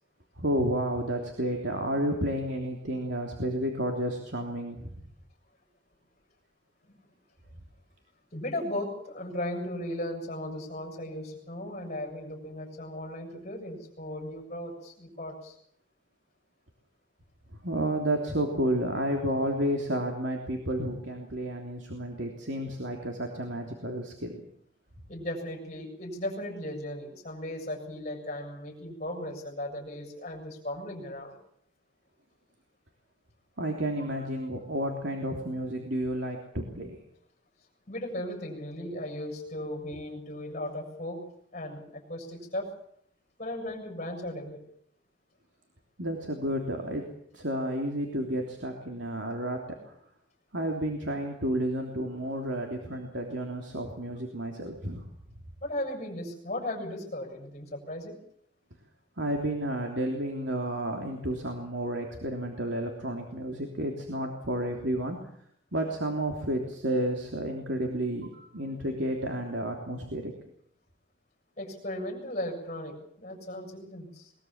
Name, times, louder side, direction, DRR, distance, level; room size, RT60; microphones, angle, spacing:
voice 1, 0.4-5.0 17.6-24.4 33.6-37.0 46.0-47.0 47.3-49.6 50.5-55.0 59.2-65.2 65.7-70.3, right 1 dB, 65° right, 2 dB, 3.3 m, -31 dB
voice 2, 8.3-15.6 25.1-31.4 37.9-42.7 43.4-44.6 55.6-58.2 71.6-74.3, left 1 dB, 35° left, 1 dB, 7.0 m, -36 dB
22.5 x 21.5 x 7.4 m, 0.67 s
head